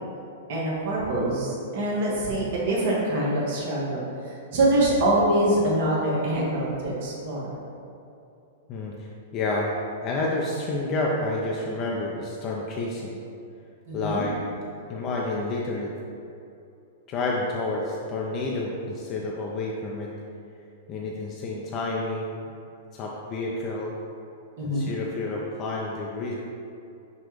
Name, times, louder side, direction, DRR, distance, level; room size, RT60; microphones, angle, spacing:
voice 1, 0.5-7.5 13.9-14.2 24.6-24.9, right 1 dB, 55° right, -5 dB, 1.0 m, -25 dB
voice 2, 8.7-9.7 10.0-13.2 13.9-14.4 14.9-15.9 17.1-20.1 20.9-22.4 22.9-23.9 24.6-26.3, left 2 dB, 35° left, -3 dB, 0.4 m, -29 dB
6.0 x 2.3 x 3.1 m, 2.6 s
hypercardioid pair, 120°, 0 cm